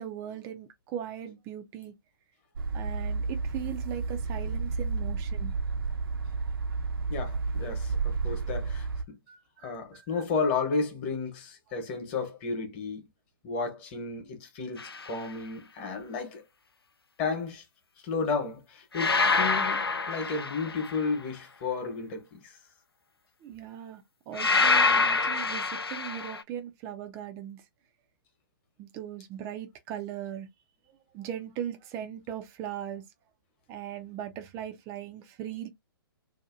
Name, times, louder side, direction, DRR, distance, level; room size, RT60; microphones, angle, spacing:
voice 1, 0.0-1.9 2.7-5.5 9.3-9.7 10.1-10.2 23.4-27.6 28.8-30.5 31.1-33.0 33.7-35.7, right 10 dB, 20° right, 0.4 m, -39 dB
sound 1, 2.6-9.0, right 4 dB, 65° right, 0.6 m, -31 dB
voice 2, 7.1-9.2 9.6-13.1 13.4-16.4 17.2-17.6 18.0-19.8 20.1-22.6, left 4 dB, 30° left, 1.1 m, -33 dB
sound 2, 14.8-15.1 18.9-21.1 24.4-26.4, left 4 dB, 90° left, 0.4 m, -26 dB
2.8 x 2.4 x 2.5 m
figure-of-eight pair, 125°, 12 cm